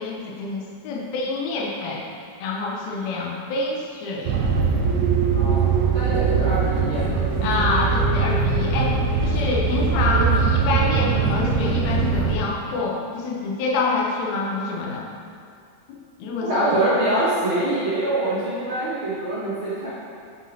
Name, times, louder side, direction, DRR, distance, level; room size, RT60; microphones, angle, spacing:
voice 1, 0.0-2.0 2.4-4.4 7.4-9.0 9.2-15.1 15.9-16.8, left 3 dB, 80° left, -2 dB, 1.6 m, -26 dB
sound 1, 4.3-12.4, right 5 dB, 90° right, 2.5 m, -21 dB
voice 2, 5.3-7.1 7.4-7.6 16.4-19.9, right 1 dB, 70° right, -12 dB, 1.2 m, -24 dB
8.1 x 6.4 x 2.7 m, 2.3 s
omnidirectional pair, 4.3 m